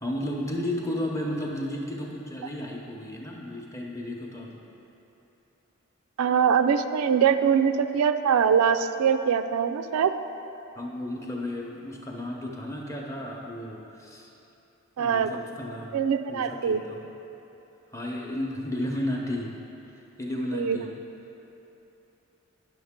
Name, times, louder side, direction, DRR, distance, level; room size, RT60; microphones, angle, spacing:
voice 1, 0.0-4.6 10.8-14.3 15.0-16.0 16.3-17.0 17.9-19.6 19.9-20.9, left 1 dB, 15° left, -1 dB, 0.7 m, -33 dB
voice 2, 6.2-10.1 15.0-15.3 15.9-16.8 20.5-20.8, right 7 dB, 80° right, 9 dB, 0.3 m, -23 dB
10.0 x 6.4 x 3.6 m, 3.0 s
head